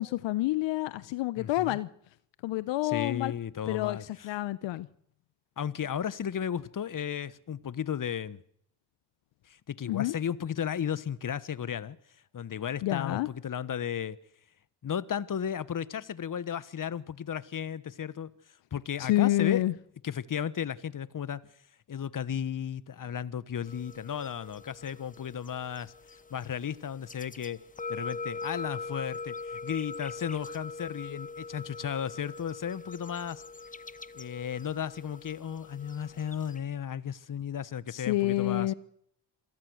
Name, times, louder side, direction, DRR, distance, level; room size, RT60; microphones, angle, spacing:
voice 1, 0.0-1.9 2.4-3.3 3.7-4.9 9.9-10.1 12.8-13.3 19.0-19.7 37.9-38.7, left 16 dB, 80° left, 0.9 m, -28 dB
voice 2, 1.4-1.8 2.8-4.3 5.6-8.4 9.5-12.0 12.3-14.2 14.8-18.3 18.7-19.6 20.0-21.4 21.9-25.9 26.3-27.6 27.9-33.4 34.1-38.7, left 8 dB, 45° left, 1.4 m, -34 dB
sound 1, 23.6-36.6, left 4 dB, 20° left, 1.1 m, -42 dB
27.5 x 17.5 x 6.5 m
supercardioid pair, 60°, 43 cm